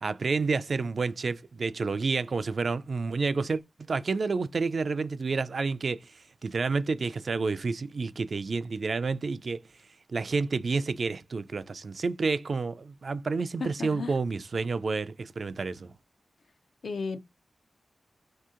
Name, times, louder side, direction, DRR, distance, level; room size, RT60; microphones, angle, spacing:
voice 1, 0.0-3.6 3.9-6.0 6.4-9.6 10.1-15.9, right 4 dB, 55° right, 0.3 m, -29 dB
voice 2, 13.6-14.2 16.8-17.2, left 4 dB, 75° left, 0.4 m, -34 dB
2.7 x 2.7 x 3.6 m
wide cardioid pair, 110°, 0 cm